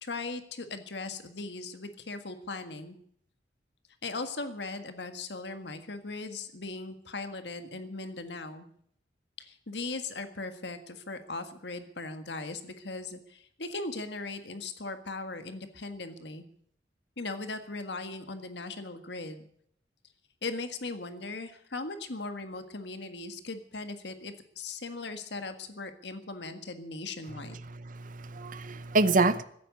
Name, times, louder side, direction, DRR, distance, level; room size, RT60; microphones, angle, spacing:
voice 1, 0.0-3.0 4.0-8.7 9.4-16.4 17.2-19.5 20.4-27.6, left 3 dB, 65° left, 1.7 m, -38 dB
voice 2, 27.7-29.4, right 3 dB, 45° right, 0.8 m, -27 dB
16.0 x 9.1 x 9.7 m
head